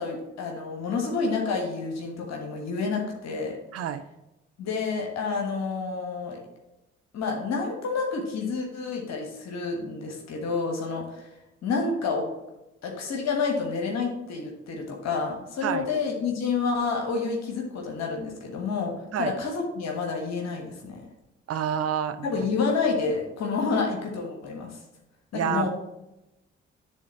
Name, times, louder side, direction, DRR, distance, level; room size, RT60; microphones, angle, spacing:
voice 1, 0.0-3.6 4.6-6.4 7.1-11.3 11.6-12.3 12.8-18.9 19.2-21.0 22.2-24.8 25.4-25.7, left 4 dB, 60° left, 1 dB, 1.4 m, -29 dB
voice 2, 3.7-4.0 15.6-15.9 19.1-19.3 21.5-22.3 25.3-25.7, right 9 dB, 50° right, 10 dB, 0.6 m, -28 dB
9.9 x 3.8 x 4.3 m, 0.95 s
figure-of-eight pair, 40°, 30 cm